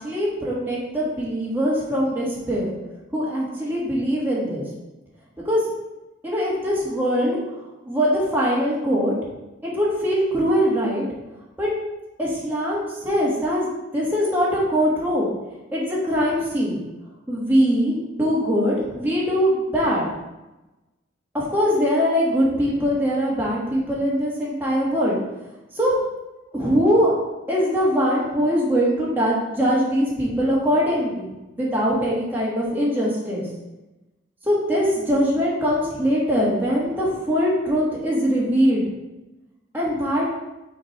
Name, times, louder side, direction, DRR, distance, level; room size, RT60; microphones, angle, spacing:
voice 1, 0.0-2.8 3.1-4.6 5.4-5.6 6.2-7.4 7.8-9.1 9.6-11.0 11.6-11.7 12.2-15.3 15.7-16.8 17.3-20.0 21.3-25.2 25.7-25.9 26.5-27.1 27.5-31.3 31.6-33.4 34.5-38.9 39.7-40.3, equal, 10° right, -6 dB, 1.7 m, -22 dB
6.0 x 3.7 x 4.6 m, 1.0 s
head